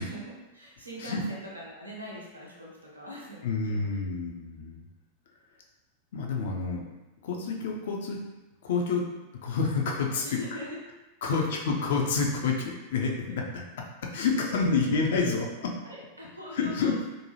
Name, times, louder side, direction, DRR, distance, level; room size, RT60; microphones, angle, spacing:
voice 1, 0.0-4.2 4.5-4.7 10.2-10.8 11.3-11.5 14.5-15.4 15.8-17.1, equal, 85° right, -4 dB, 0.7 m, -42 dB
voice 2, 3.4-4.8 6.1-6.8 7.2-8.2 8.6-9.1 9.4-10.3 11.2-13.6 14.0-15.5 16.5-16.9, left 4 dB, 55° left, 0 dB, 0.4 m, -28 dB
2.6 x 2.2 x 3.0 m, 1.1 s
figure-of-eight pair, 90°, 0 cm